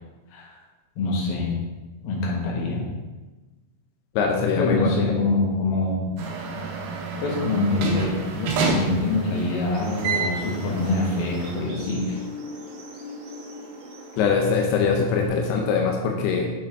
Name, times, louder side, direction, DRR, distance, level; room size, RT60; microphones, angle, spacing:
voice 1, 1.0-1.6 2.0-2.8 4.6-6.1 7.2-12.2, left 2 dB, 70° left, -3 dB, 3.2 m, -25 dB
voice 2, 4.2-4.9 14.2-16.5, left 5 dB, 90° left, 1 dB, 2.8 m, -22 dB
sound 1, 6.2-11.7, right 4 dB, 80° right, 3.0 m, -29 dB
sound 2, 9.7-15.3, left 1 dB, 60° right, 2.0 m, -40 dB
8.4 x 6.1 x 3.6 m, 1.2 s
omnidirectional pair, 4.5 m